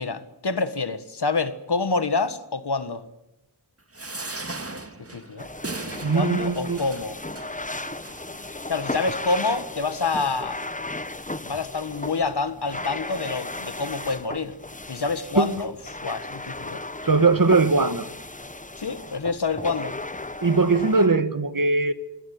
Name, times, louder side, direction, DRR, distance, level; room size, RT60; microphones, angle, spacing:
voice 1, 0.0-3.1 5.1-5.5 6.1-7.2 8.7-10.6 11.4-14.5 14.9-15.7 16.0-16.8 18.8-20.0, left 4 dB, 65° left, 1.6 m, -27 dB
sound 1, 3.9-8.5 9.1-9.2 9.5-9.6, right 2 dB, 35° right, 2.0 m, -38 dB
sound 2, 5.4-21.1, left 2 dB, 20° left, 1.1 m, -35 dB
voice 2, 6.0-6.8 15.4-15.5 17.0-18.0 20.4-21.9, right 3 dB, 50° right, 1.6 m, -20 dB
25.5 x 17.0 x 9.5 m
wide cardioid pair, 55°, 42 cm